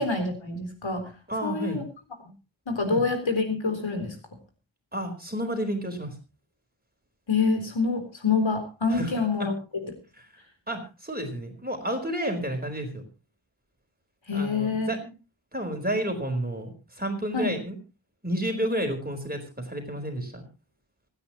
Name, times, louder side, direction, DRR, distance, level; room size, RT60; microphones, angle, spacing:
voice 1, 0.0-1.1 1.4-1.8 2.7-4.2 7.3-9.5 14.3-15.0 17.3-17.5, left 4 dB, 80° left, 6 dB, 3.8 m, -26 dB
voice 2, 1.3-1.8 2.9-3.0 4.9-6.1 8.9-9.5 10.7-13.0 14.3-15.0 15.5-17.8 18.2-20.4, right 1 dB, 20° right, 4 dB, 4.3 m, -31 dB
26.0 x 9.7 x 3.0 m, 0.30 s
wide cardioid pair, 60°, 45 cm